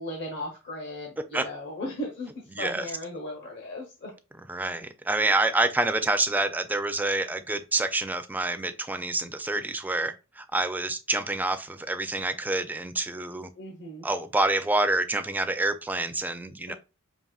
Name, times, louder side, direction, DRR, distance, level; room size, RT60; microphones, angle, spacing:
voice 1, 0.0-4.1 13.6-14.1 16.7-16.8, left 1 dB, 55° left, 0.9 m, -37 dB
voice 2, 2.5-2.9 4.5-13.5 14.0-16.7, right 2 dB, 10° right, 0.3 m, -27 dB
5.4 x 2.8 x 2.3 m
head